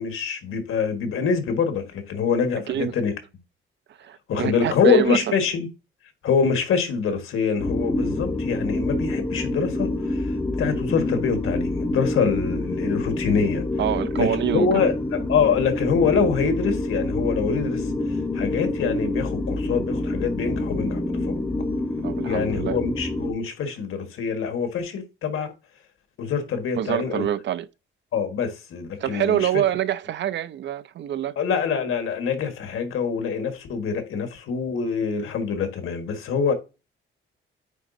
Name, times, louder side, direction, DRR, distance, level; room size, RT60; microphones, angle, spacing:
voice 1, 0.0-3.1 4.3-5.7 6.2-13.6 14.2-14.9 15.3-21.4 22.2-25.5 26.2-27.3 28.1-29.5 31.4-36.5, left 6 dB, 85° left, 1.5 m, -25 dB
voice 2, 4.0-5.2 13.8-14.8 22.0-22.8 26.8-27.7 29.0-31.4, right 11 dB, 60° right, 0.4 m, -25 dB
sound 1, 7.6-23.3, left 2 dB, 10° left, 0.7 m, -27 dB
9.2 x 3.9 x 2.6 m
wide cardioid pair, 150°, 21 cm